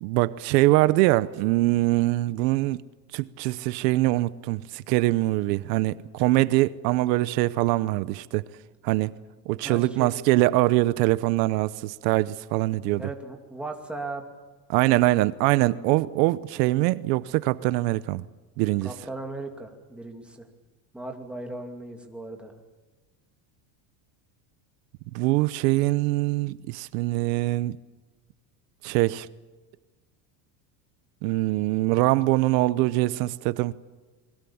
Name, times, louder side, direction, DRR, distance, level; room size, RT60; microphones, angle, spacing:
voice 1, 0.0-2.8 3.1-8.4 8.8-9.1 9.5-13.0 14.7-18.2 18.6-18.9 25.1-27.8 28.8-29.3 31.2-33.7, right 18 dB, 80° right, 1.0 m, -23 dB
voice 2, 9.6-10.1 13.0-14.2 15.1-15.2 18.8-20.5 20.9-22.5, right 2 dB, ahead, 2.5 m, -37 dB
28.5 x 22.0 x 7.2 m
cardioid pair, 160°, 49 cm